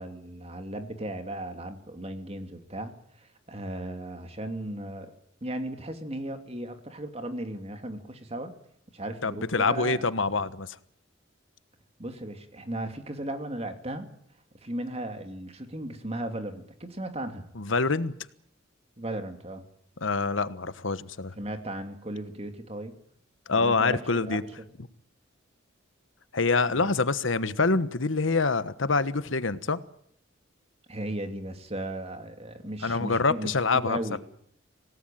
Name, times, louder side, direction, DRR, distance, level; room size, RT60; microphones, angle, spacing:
voice 1, 0.0-5.1 5.4-8.5 8.9-10.0 12.0-14.1 14.6-17.5 19.0-19.7 21.4-23.0 23.5-24.5 26.7-26.9 30.9-34.2, right 1 dB, 30° right, 2.7 m, -36 dB
voice 2, 9.2-10.8 17.6-18.1 20.0-21.3 23.5-24.4 26.3-29.8 32.8-34.2, left 4 dB, 80° left, 1.2 m, -26 dB
26.0 x 18.5 x 9.2 m
head